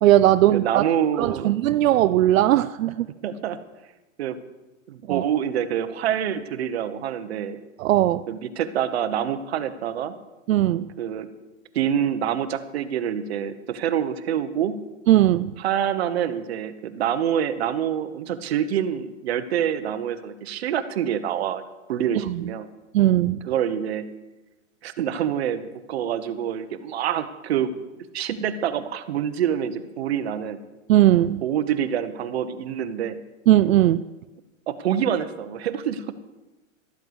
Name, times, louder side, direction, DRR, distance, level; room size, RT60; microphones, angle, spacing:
voice 1, 0.0-0.8 1.2-3.1 5.1-5.2 7.8-8.3 10.5-10.9 15.1-15.5 22.3-22.4 22.9-23.4 30.9-31.4 33.5-34.0, right 13 dB, 85° right, 13 dB, 0.5 m, -18 dB
voice 2, 0.5-1.5 3.2-3.6 4.2-4.4 4.9-7.6 8.3-10.1 11.0-11.3 11.7-14.8 15.6-21.6 21.9-22.7 23.5-24.1 24.8-27.7 28.1-30.6 31.4-33.2 34.7-36.1, right 9 dB, 50° right, 11 dB, 1.1 m, -26 dB
13.5 x 13.0 x 4.8 m, 1.1 s
supercardioid pair, 175°, 39 cm